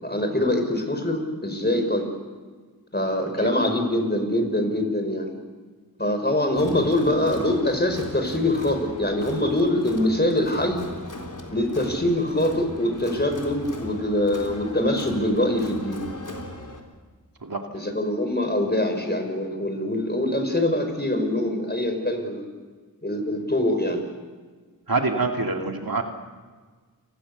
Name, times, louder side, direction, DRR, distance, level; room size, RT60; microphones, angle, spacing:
voice 1, 0.0-2.1 2.9-5.3 6.0-10.8 11.5-16.0 17.7-22.5 23.0-24.0, left 1 dB, 25° left, 5 dB, 5.4 m, -24 dB
Crowd, 6.6-16.8, left 1 dB, 55° left, 3.8 m, -38 dB
voice 2, 24.9-26.0, right 3 dB, 65° right, 3 dB, 2.4 m, -25 dB
29.0 x 20.5 x 6.9 m, 1.4 s
wide cardioid pair, 45°, 37 cm